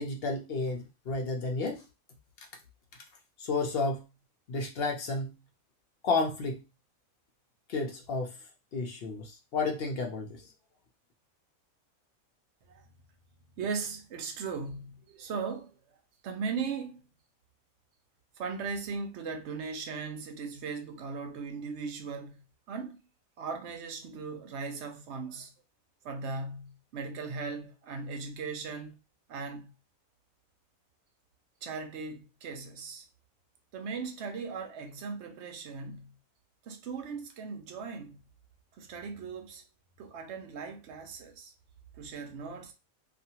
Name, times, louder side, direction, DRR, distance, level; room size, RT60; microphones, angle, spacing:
voice 1, 0.0-1.8 3.4-4.0 4.5-5.3 6.0-6.6 7.7-8.3 8.7-10.4, left 3 dB, 55° left, 0.7 m, -31 dB
voice 2, 13.6-16.0 16.2-17.0 18.4-23.0 23.4-25.5 26.0-29.0 29.3-29.7 31.6-33.0 33.7-36.1 36.6-38.2 38.7-39.6 40.0-41.5 41.9-42.7, right 5 dB, 65° right, 0.8 m, -38 dB
2.5 x 2.4 x 2.8 m
omnidirectional pair, 1.4 m